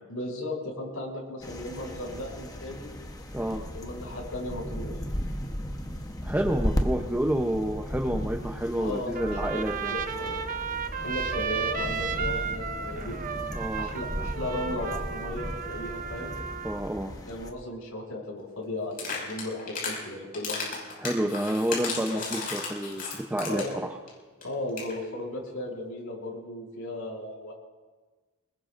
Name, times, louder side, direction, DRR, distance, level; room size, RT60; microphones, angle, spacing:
voice 1, 0.1-2.9 3.7-4.9 8.8-9.6 9.9-10.3 11.0-13.1 13.8-16.3 17.2-20.5 22.1-22.3 23.5-23.8 24.4-27.5, left 1 dB, 75° left, -4 dB, 6.7 m, -36 dB
sound 1, 1.4-17.5, equal, 20° left, 1.1 m, -36 dB
voice 2, 3.3-3.6 6.2-9.9 13.5-13.9 16.6-17.1 21.0-24.0, right 1 dB, 10° right, 2 dB, 0.8 m, -29 dB
Trumpet, 9.1-16.8, right 6 dB, 40° right, 0.8 m, -33 dB
sound 2, 18.9-20.0 20.3-23.8 24.1-24.2 24.4-24.5 24.7-24.9, left 4 dB, 45° left, 6.1 m, -34 dB
26.0 x 20.5 x 2.6 m, 1.3 s
head